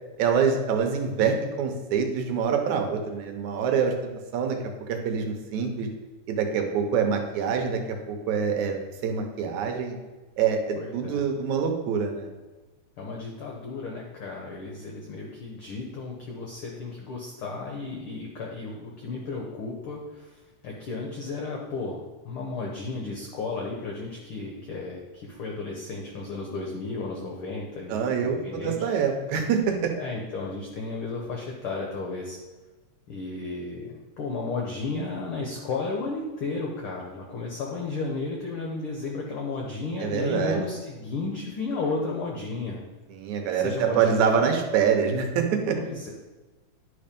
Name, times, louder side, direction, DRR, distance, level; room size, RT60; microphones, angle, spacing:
voice 1, 0.2-4.6 4.9-5.9 6.3-7.8 8.1-10.0 10.4-12.3 27.9-29.9 40.0-40.6 43.1-45.8, right 6 dB, 75° right, 4 dB, 2.3 m, -25 dB
voice 2, 10.8-11.2 13.0-22.0 22.2-28.9 29.9-32.4 33.1-42.8 43.5-44.5 45.7-46.1, left 3 dB, 65° left, -1 dB, 1.5 m, -33 dB
10.5 x 4.3 x 5.2 m, 1.2 s
omnidirectional pair, 3.5 m